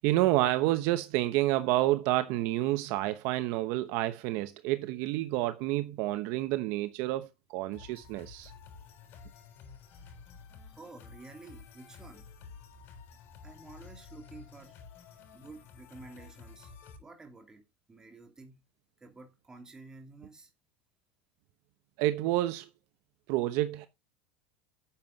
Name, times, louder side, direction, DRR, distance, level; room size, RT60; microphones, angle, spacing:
voice 1, 0.0-8.5 22.0-22.7 23.3-23.9, right 16 dB, 55° right, 0.9 m, -29 dB
sound 1, 7.7-17.0, left 5 dB, 40° left, 7.2 m, -51 dB
voice 2, 10.7-12.3 13.4-14.8 15.3-16.7 17.0-17.6 17.9-18.6 19.0-20.5, right 3 dB, 10° right, 2.9 m, -51 dB
10.0 x 7.4 x 4.0 m
supercardioid pair, 145°, 6 cm